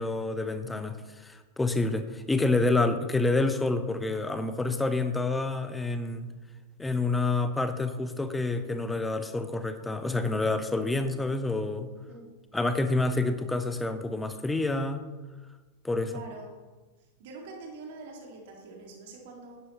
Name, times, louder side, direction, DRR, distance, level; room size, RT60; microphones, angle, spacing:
voice 1, 0.0-6.3 6.8-11.9 12.5-15.0 15.8-16.1, left 2 dB, 10° left, 10 dB, 0.8 m, -28 dB
voice 2, 16.1-16.5 17.0-19.6, right 3 dB, 55° right, 0 dB, 2.1 m, -45 dB
11.0 x 11.0 x 3.0 m, 1.3 s
figure-of-eight pair, 90°, 0 cm